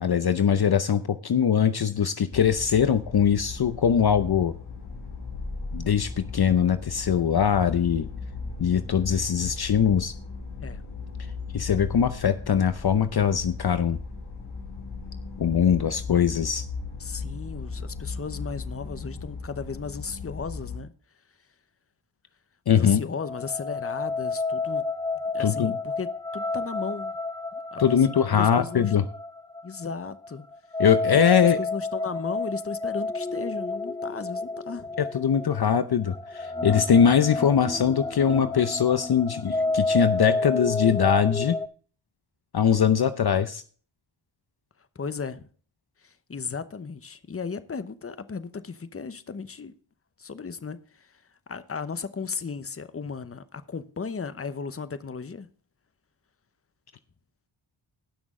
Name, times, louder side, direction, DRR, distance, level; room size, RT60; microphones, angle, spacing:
voice 1, 0.0-4.5 5.7-8.1 8.6-10.1 11.5-14.0 15.4-16.6 22.7-23.0 25.4-25.7 27.8-29.0 30.8-31.6 35.0-41.6 42.5-43.6, left 8 dB, 50° left, 0.7 m, -22 dB
sound 1, 2.3-20.8, left 4 dB, 85° left, 4.9 m, -37 dB
voice 2, 17.0-20.9 22.7-24.8 25.3-27.2 27.5-28.0 28.3-28.9 29.6-30.5 31.1-35.0 44.9-45.5 46.0-49.7 50.2-55.5, left 5 dB, 30° left, 0.9 m, -35 dB
sound 2, 23.2-41.7, left 3 dB, 10° left, 0.4 m, -30 dB
18.5 x 6.2 x 3.7 m
wide cardioid pair, 75°, 48 cm